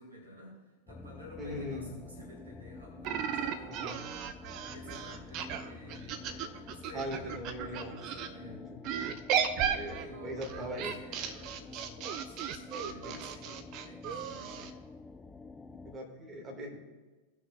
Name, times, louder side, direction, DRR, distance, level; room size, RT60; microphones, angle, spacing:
voice 1, 0.0-8.6 9.5-14.8, left 1 dB, 80° right, -1 dB, 2.2 m, -51 dB
sound 1, 0.9-16.0, left 3 dB, 15° left, 0.3 m, -49 dB
voice 2, 1.4-1.9 3.6-4.0 6.9-8.0 8.4-8.8 9.8-11.0 13.0-13.2 15.8-16.8, equal, 25° right, 1 dB, 2.1 m, -40 dB
sound 2, 3.0-8.3 8.8-14.7, right 8 dB, 40° right, 0.6 m, -35 dB
17.0 x 6.0 x 2.4 m, 1.2 s
figure-of-eight pair, 90°, 0 cm